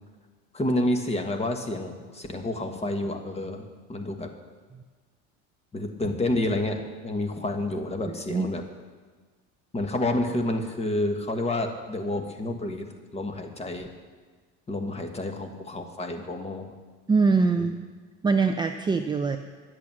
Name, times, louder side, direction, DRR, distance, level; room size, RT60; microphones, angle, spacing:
voice 1, 0.5-4.3 5.7-8.6 9.7-12.9 13.1-13.9 14.7-16.7 17.6-17.7, left 1 dB, 20° left, 5 dB, 1.5 m, -29 dB
voice 2, 8.1-8.5 17.1-17.7 18.2-19.4, right 4 dB, 15° right, 6 dB, 0.5 m, -23 dB
11.0 x 8.3 x 7.6 m, 1.4 s
supercardioid pair, 110°, 33 cm